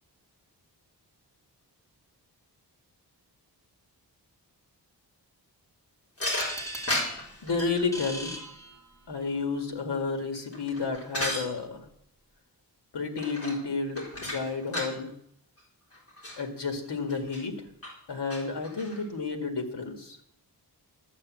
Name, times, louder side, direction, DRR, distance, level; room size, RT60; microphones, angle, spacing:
sound 1, 6.2-7.8 10.2-11.5 13.2-13.7 14.0-15.0 15.6-15.7 15.9-16.4 17.1-17.4 17.8-17.9 18.3-19.0, left 1 dB, 35° left, 4.1 m, -34 dB
sound 2, 6.2-9.3, right 1 dB, 5° left, 2.0 m, -40 dB
voice 1, 7.4-8.3 9.1-11.9 12.9-15.1 16.4-17.6 18.1-20.2, left 4 dB, 80° left, 5 dB, 2.1 m, -31 dB
11.5 x 8.2 x 7.6 m, 0.72 s
wide cardioid pair, 135°, 41 cm